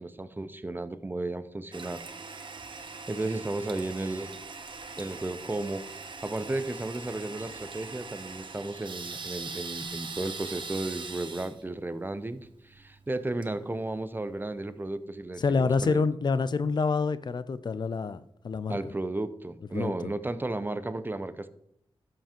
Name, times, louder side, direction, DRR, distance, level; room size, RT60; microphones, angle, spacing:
voice 1, 0.0-2.0 2.8-4.3 5.0-5.8 6.2-16.1 18.7-21.5, right 2 dB, 20° right, 0.5 m, -34 dB
Toilet flush, 1.7-14.4, right 4 dB, 55° right, 0.8 m, -42 dB
voice 2, 15.4-18.8 19.7-19.9, left 4 dB, 50° left, 0.3 m, -27 dB
12.5 x 5.6 x 2.9 m
wide cardioid pair, 75°, 10 cm